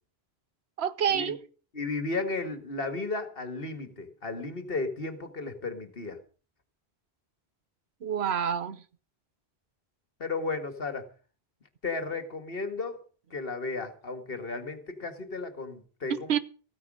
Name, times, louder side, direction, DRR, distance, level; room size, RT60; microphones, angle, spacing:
voice 1, 0.8-1.4 8.0-8.8 16.1-16.4, right 8 dB, 85° right, 1.1 m, -27 dB
voice 2, 1.7-6.2 10.2-11.1 11.8-13.0 13.3-16.4, left 3 dB, 65° left, 2.1 m, -34 dB
15.0 x 9.6 x 6.3 m
omnidirectional pair, 1.0 m